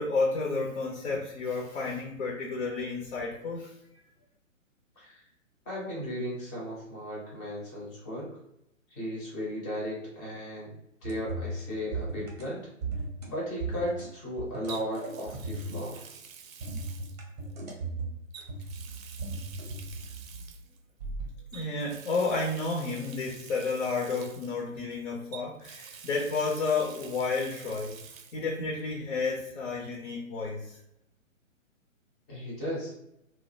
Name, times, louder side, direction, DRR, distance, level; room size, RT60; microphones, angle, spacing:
voice 1, 0.0-3.7 21.5-28.0 28.3-30.8, left 3 dB, 60° left, 0 dB, 0.6 m, -31 dB
voice 2, 5.7-8.3 8.9-10.7 11.0-12.6 13.3-16.1 32.3-32.9, equal, 15° left, -5 dB, 0.5 m, -35 dB
sound 1, 11.0-11.6 11.9-12.4 12.8-13.3 13.6-14.1 14.4-15.9 16.6-18.2 18.5-20.6 21.0-21.3, right 3 dB, 30° right, 0.6 m, -36 dB
Water tap faucet, 11.7-11.9 14.7-17.7 18.3-20.8 21.5-24.9 25.3-28.5 28.8-28.9 30.4-30.5, right 7 dB, 80° right, 0.5 m, -48 dB
2.3 x 2.1 x 2.6 m, 0.80 s
figure-of-eight pair, 135°, 40 cm